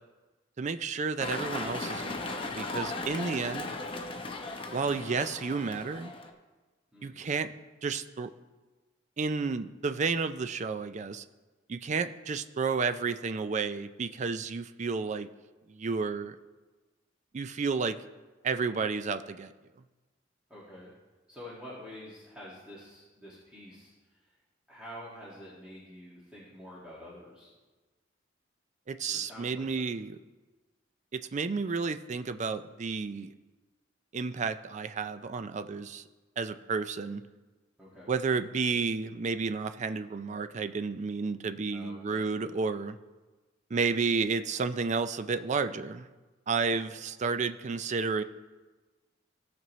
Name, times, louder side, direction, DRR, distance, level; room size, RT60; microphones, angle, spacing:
voice 1, 0.6-3.7 4.7-6.1 7.0-7.5 7.8-8.3 9.2-11.2 11.7-15.3 15.7-16.4 17.3-18.0 18.4-19.5 28.9-30.2 31.1-33.3 34.1-36.0 36.4-37.2 38.1-43.0 43.7-46.1 46.5-48.2, right 4 dB, 40° right, 11 dB, 0.4 m, -31 dB
sound 1, 1.2-6.3, left 2 dB, 30° left, 0.8 m, -37 dB
voice 2, 6.9-7.4 20.5-20.9 21.3-24.3 24.7-27.5 29.1-29.6 37.8-38.1 41.7-42.3, equal, 5° right, -9 dB, 1.8 m, -48 dB
17.0 x 6.0 x 3.1 m, 1.2 s
head